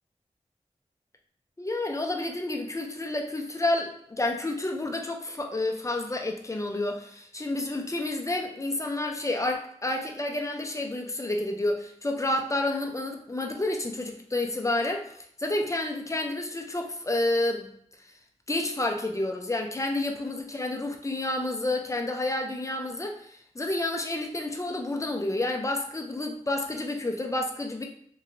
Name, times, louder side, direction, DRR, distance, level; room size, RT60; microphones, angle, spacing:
voice 1, 1.6-15.1 15.4-17.7 18.5-27.8, left 2 dB, 25° left, 3 dB, 0.6 m, -30 dB
3.0 x 2.8 x 2.6 m, 0.65 s
cardioid pair, 50°, 12 cm